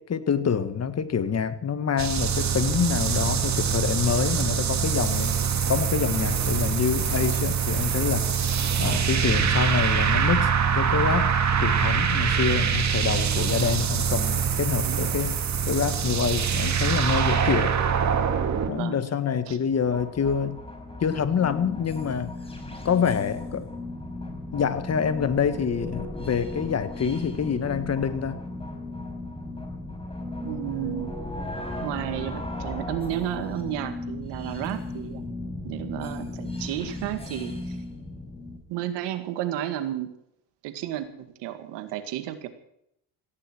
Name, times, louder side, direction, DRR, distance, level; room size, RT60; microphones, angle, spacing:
voice 1, 0.0-5.3 5.7-8.3 8.8-10.5 10.7-11.3 11.6-15.4 15.7-17.8 18.7-20.6 21.0-22.4 22.8-23.7 24.5-28.4, left 7 dB, 40° left, 11 dB, 1.8 m, -26 dB
sound 1, 2.0-18.7, right 7 dB, 40° right, 2.4 m, -24 dB
voice 2, 8.8-9.1 13.6-13.8 14.8-15.2 18.7-19.0 19.5-19.6 30.4-31.1 31.8-35.2 35.6-37.8 38.7-40.1 40.6-42.5, right 12 dB, 85° right, 9 dB, 2.1 m, -32 dB
sound 2, 19.7-38.6, left 2 dB, 15° left, 4.9 m, -36 dB
18.0 x 16.0 x 4.6 m, 0.75 s
cardioid pair, 90°, 41 cm